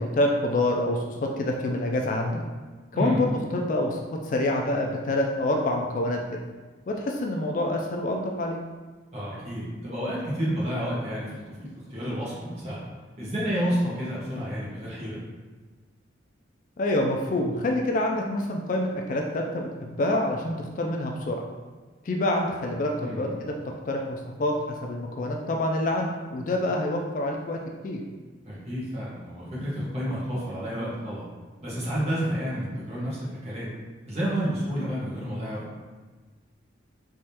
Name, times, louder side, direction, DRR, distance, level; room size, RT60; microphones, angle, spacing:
voice 1, 0.0-2.4 2.9-4.0 4.2-6.2 6.9-8.6 16.8-21.4 22.1-23.5 23.9-27.6 27.8-28.1, left 1 dB, 45° left, 1 dB, 0.3 m, -27 dB
voice 2, 9.1-11.4 11.9-12.8 13.2-15.2 23.0-23.3 28.4-31.3 31.6-33.7 34.0-35.6, equal, 35° right, -8 dB, 1.2 m, -30 dB
3.5 x 3.0 x 2.8 m, 1.3 s
head